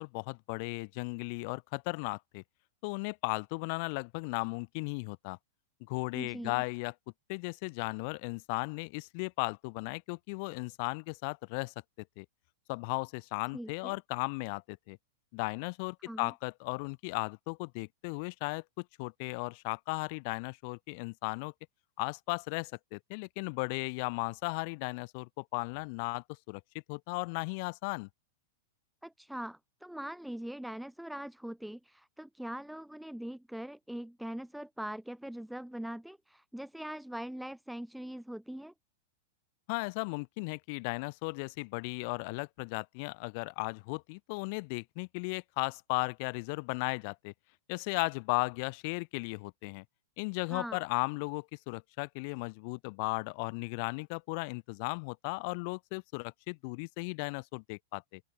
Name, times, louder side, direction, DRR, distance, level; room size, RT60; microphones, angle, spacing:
voice 1, 0.0-2.4 2.8-5.4 5.9-6.9 7.3-11.7 12.2-12.3 12.7-15.0 15.3-21.5 22.0-26.6 26.9-28.1 39.7-47.3 47.7-49.8 50.2-58.2, left 32 dB, 50° left, 3.9 m, -36 dB
voice 2, 6.1-6.6 13.5-14.0 16.1-16.3 29.0-38.7 50.5-50.8, right 1 dB, ahead, 3.5 m, -42 dB
open air
hypercardioid pair, 140°, 0 cm